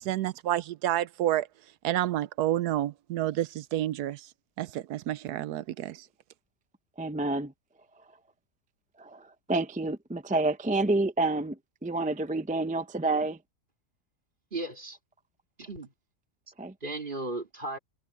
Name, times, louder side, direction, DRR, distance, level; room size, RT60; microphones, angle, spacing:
voice 1, 0.0-1.5 1.8-4.2 4.6-6.0, right 13 dB, 90° right, 1.2 m, -29 dB
voice 2, 7.0-7.5 9.0-13.4 16.6-16.7, right 2 dB, 10° right, 0.4 m, -29 dB
voice 3, 14.5-15.0 15.6-15.9 16.8-17.8, right 2 dB, 30° right, 2.9 m, -35 dB
omnidirectional pair, 1.6 m